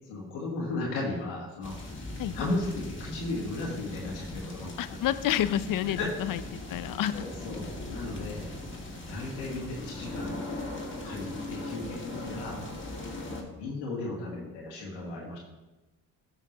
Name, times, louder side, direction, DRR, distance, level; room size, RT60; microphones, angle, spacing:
voice 1, 0.1-1.8 2.3-5.0 5.9-6.1 7.1-8.5 9.1-10.4 11.0-12.6 13.6-15.4, left 2 dB, 85° left, -4 dB, 1.7 m, -35 dB
sound 1, 1.6-13.4, left 2 dB, 30° left, 2.1 m, -39 dB
voice 2, 4.8-6.4 6.7-7.3 8.9-9.0 13.4-13.7, left 11 dB, 55° left, 15 dB, 0.5 m, -29 dB
12.5 x 5.7 x 3.0 m, 1.1 s
hypercardioid pair, 55°, 40 cm